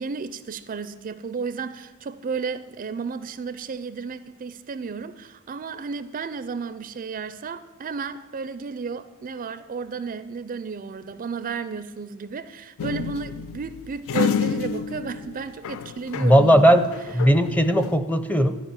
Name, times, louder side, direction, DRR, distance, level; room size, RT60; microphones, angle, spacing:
voice 1, 0.0-16.8, right 5 dB, 40° right, 0.4 m, -33 dB
sound 1, 12.8-16.5 16.8-18.0, left 7 dB, 65° left, 0.4 m, -29 dB
voice 2, 16.2-16.8 17.1-18.6, equal, 5° left, 0.6 m, -17 dB
13.5 x 5.1 x 8.9 m
head